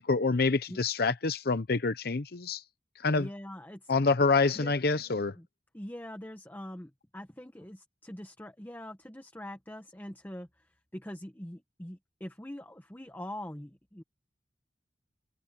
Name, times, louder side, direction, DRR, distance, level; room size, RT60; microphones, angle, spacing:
voice 1, 0.0-2.6 3.0-3.3 3.9-5.3, left 4 dB, 60° left, 0.8 m, -27 dB
voice 2, 3.1-3.9 4.5-4.7 5.4-5.5 5.7-14.0, left 1 dB, 10° left, 1.1 m, -43 dB
head